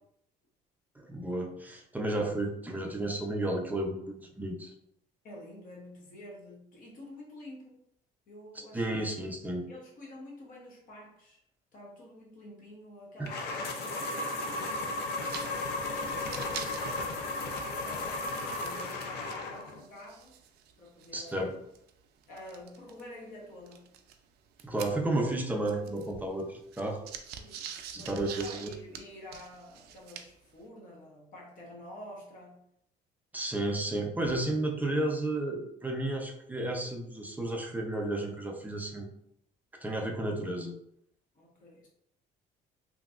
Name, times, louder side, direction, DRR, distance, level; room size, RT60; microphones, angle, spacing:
voice 1, 1.0-4.7 8.7-9.7 13.2-13.3 21.1-21.5 24.6-27.0 27.9-28.7 33.3-39.0 39.8-40.8, right 1 dB, 10° right, 2 dB, 0.5 m, -32 dB
voice 2, 5.2-7.8 8.3-9.3 9.7-11.4 11.7-13.5 13.8-15.1 15.8-18.3 18.5-20.4 20.8-21.5 22.3-24.0 24.9-25.3 27.2-32.7 33.7-33.9 41.3-41.9, left 1 dB, 55° left, -2 dB, 1.0 m, -49 dB
sound 1, 13.3-19.8, left 2 dB, 70° left, 0.5 m, -35 dB
sound 2, 15.2-15.5 15.8-15.9 16.2-19.1 19.3-23.0 23.7-25.4 25.6-30.5, right 8 dB, 75° right, 0.4 m, -45 dB
3.0 x 2.6 x 2.4 m, 0.74 s
cardioid pair, 110°, 17 cm